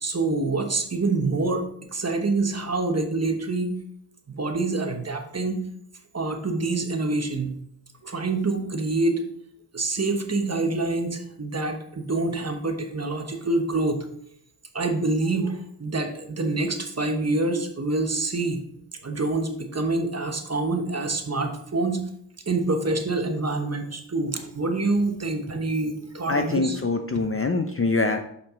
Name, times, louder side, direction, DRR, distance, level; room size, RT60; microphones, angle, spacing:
voice 1, 0.0-1.7 1.9-3.8 4.3-5.6 6.1-7.6 8.0-9.2 9.7-14.1 14.7-18.6 19.0-22.0 22.5-26.8, right 3 dB, 30° right, 5 dB, 1.0 m, -26 dB
voice 2, 26.3-28.2, left 3 dB, 30° left, 6 dB, 0.5 m, -24 dB
6.8 x 5.6 x 3.7 m, 0.68 s
wide cardioid pair, 90°, 49 cm